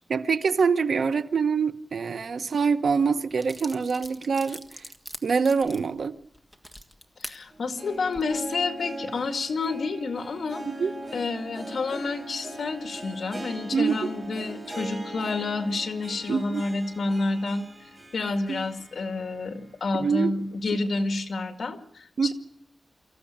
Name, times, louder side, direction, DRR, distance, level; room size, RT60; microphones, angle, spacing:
voice 1, 0.1-4.8 5.2-6.2 10.7-10.9 13.7-14.1 16.3-16.6 18.5-18.6 19.9-20.3 22.2-22.3, right 5 dB, 75° right, 10 dB, 1.1 m, -25 dB
sound 1, 2.9-3.0 3.4-7.4 8.0-8.2, equal, ahead, 1.6 m, -42 dB
voice 2, 7.2-10.6 11.1-17.7 18.1-22.3, left 3 dB, 75° left, 6 dB, 2.1 m, -29 dB
Harp, 7.5-19.6 20.0-20.1 20.9-21.0, right 1 dB, 20° right, 7.9 m, -41 dB
25.5 x 15.0 x 8.8 m, 0.73 s
wide cardioid pair, 140°, 0 cm